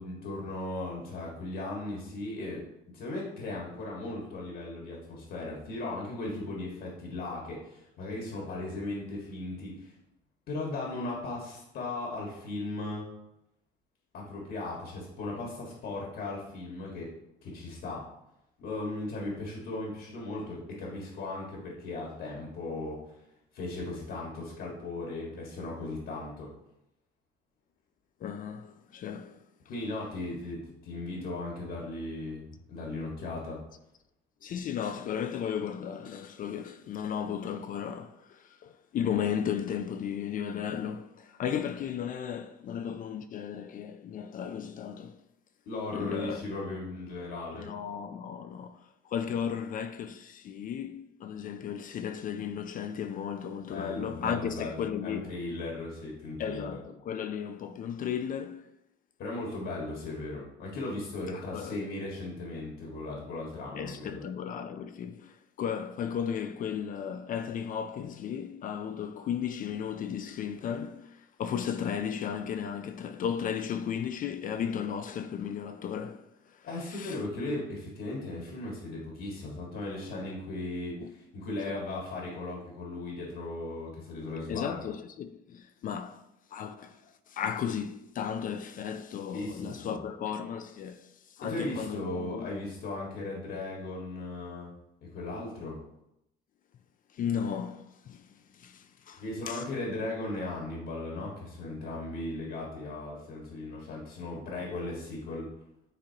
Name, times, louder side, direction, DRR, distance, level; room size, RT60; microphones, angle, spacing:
voice 1, 0.0-2.6 2.9-9.9 10.5-13.1 14.1-17.1 17.4-18.1 18.6-23.0 23.5-26.5 29.7-33.6 45.7-47.7 53.7-56.8 59.2-64.2 76.6-84.8 89.3-90.0 91.4-94.7 95.0-95.8 99.1-105.5, left 2 dB, 65° left, 1.7 m, -37 dB
voice 2, 28.2-29.4 34.4-45.2 45.9-46.4 47.5-55.3 56.4-58.7 61.3-61.8 63.7-77.2 81.0-81.1 81.7-81.8 84.5-86.2 86.5-92.5 97.1-99.6, left 8 dB, 45° left, 0.4 m, -35 dB
10.0 x 3.7 x 2.9 m
cardioid pair, 115°, 20 cm